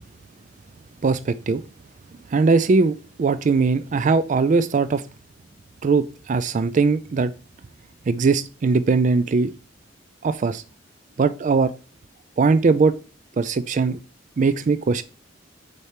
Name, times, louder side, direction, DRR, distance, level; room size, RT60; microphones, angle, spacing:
voice 1, 1.0-1.6 2.3-2.9 3.2-5.0 5.8-7.3 8.1-9.5 10.2-10.6 11.2-11.7 12.4-13.0 13.4-14.0 14.4-15.0, right 4 dB, 40° right, 14 dB, 0.3 m, -20 dB
6.5 x 4.4 x 4.7 m, 0.34 s
head